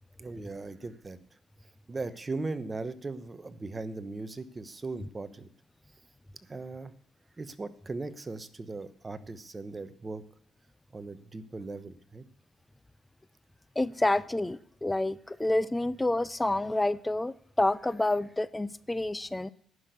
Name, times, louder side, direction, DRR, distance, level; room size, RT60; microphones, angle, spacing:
voice 1, 0.2-1.2 1.9-5.5 6.5-6.9 7.4-10.2 10.9-12.2, right 3 dB, 25° right, 13 dB, 1.0 m, -38 dB
voice 2, 13.8-19.5, left 2 dB, 15° left, 18 dB, 0.5 m, -28 dB
11.0 x 5.9 x 8.0 m, 0.63 s
cardioid pair, 90°, 0 cm